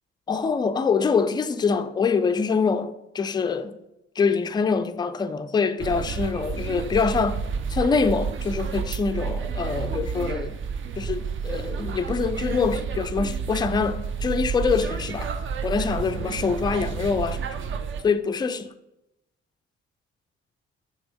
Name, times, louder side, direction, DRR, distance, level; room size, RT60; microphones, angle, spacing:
voice 1, 0.3-3.7 4.2-7.4 7.7-10.6 11.0-15.3 15.6-17.4 18.0-18.7, left 5 dB, 15° left, 0.4 m, -25 dB
sound 1, 5.8-18.0, right 6 dB, 40° right, 0.6 m, -30 dB
6.0 x 3.5 x 5.1 m
figure-of-eight pair, 40°, 32 cm